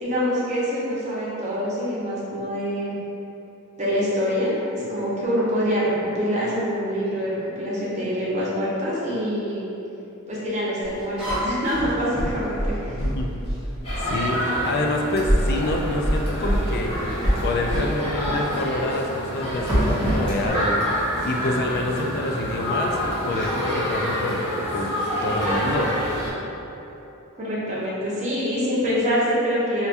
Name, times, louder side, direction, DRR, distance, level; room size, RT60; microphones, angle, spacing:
voice 1, 0.0-3.0 3.8-9.7 10.3-12.9 27.4-29.9, equal, 30° right, -8 dB, 0.7 m, -25 dB
sound 1, 10.8-14.1 14.7-14.9 15.2-17.9 18.2-18.4 19.4-20.5, equal, 5° right, 0.9 m, -25 dB
voice 2, 12.9-13.3 14.0-16.9 17.4-20.8 21.2-23.0 23.2-25.9, left 2 dB, 45° left, 1 dB, 0.3 m, -27 dB
sound 2, 13.8-26.3, equal, 25° left, 0.9 m, -27 dB
4.4 x 2.3 x 2.5 m, 3.0 s
head